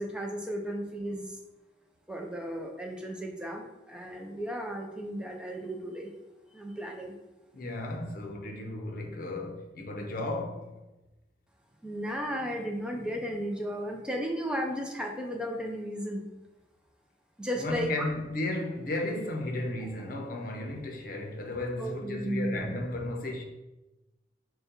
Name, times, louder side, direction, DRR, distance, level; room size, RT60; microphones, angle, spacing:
voice 1, 0.0-1.4 2.1-6.1 6.5-7.1 11.8-16.3 17.4-18.1 21.8-22.7, equal, 5° right, 0.5 m, -34 dB
voice 2, 7.5-10.7 17.5-23.4, left 1 dB, 50° left, 0.7 m, -34 dB
5.1 x 2.3 x 4.3 m
head